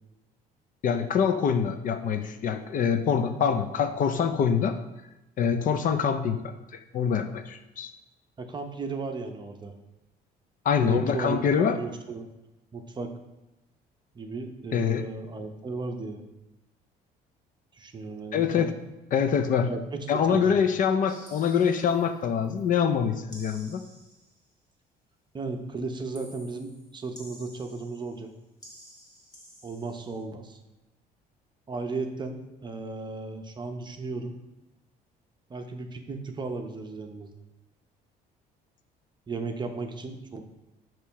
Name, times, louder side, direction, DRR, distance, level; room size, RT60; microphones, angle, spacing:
voice 1, 0.8-4.8 5.4-6.4 6.9-7.9 10.6-11.8 14.7-15.0 18.3-18.7 19.1-19.7 20.1-23.8, left 7 dB, 50° left, 9 dB, 0.5 m, -25 dB
voice 2, 8.4-9.7 10.8-12.3 12.7-13.1 14.1-16.3 17.7-18.7 19.7-20.4 25.3-28.3 29.6-30.6 31.7-34.4 35.5-37.3 39.3-40.4, right 3 dB, 25° right, 5 dB, 0.7 m, -35 dB
sound 1, 21.1-22.7 23.3-24.5 26.1-28.3 28.6-30.2, equal, 20° left, 1.7 m, -52 dB
6.4 x 3.1 x 5.7 m, 0.99 s
cardioid pair, 110°, 17 cm